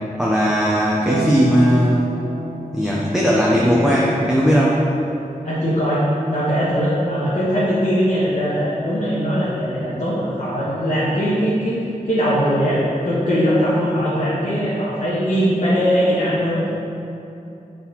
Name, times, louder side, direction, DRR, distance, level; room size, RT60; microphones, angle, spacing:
voice 1, 0.2-2.1 2.7-4.8, equal, 5° right, -5 dB, 0.8 m, -17 dB
Harp, 1.1-7.6 9.2-10.2, equal, 85° right, 1.1 m, -33 dB
voice 2, 5.4-11.8 12.0-16.7, equal, 55° left, -11 dB, 1.7 m, -20 dB
6.8 x 4.4 x 5.6 m, 2.8 s
wide cardioid pair, 85°, 15 cm